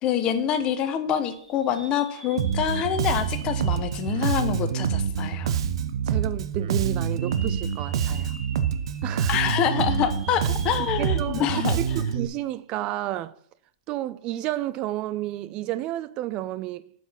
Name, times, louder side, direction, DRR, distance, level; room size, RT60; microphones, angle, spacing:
voice 1, 0.0-5.6 9.3-11.8, left 9 dB, 35° left, 1.0 m, -26 dB
sound 1, 1.3-5.3 5.8-5.9 7.0-11.9 12.3-12.4 14.3-14.5, right 3 dB, 15° right, 1.3 m, -46 dB
Bass guitar, 2.4-12.3, right 7 dB, 65° right, 0.7 m, -26 dB
voice 2, 6.1-8.3 9.0-9.4 11.0-13.3 13.9-16.8, right 14 dB, 35° right, 0.3 m, -31 dB
7.6 x 5.0 x 5.7 m
hypercardioid pair, 125°, 3 cm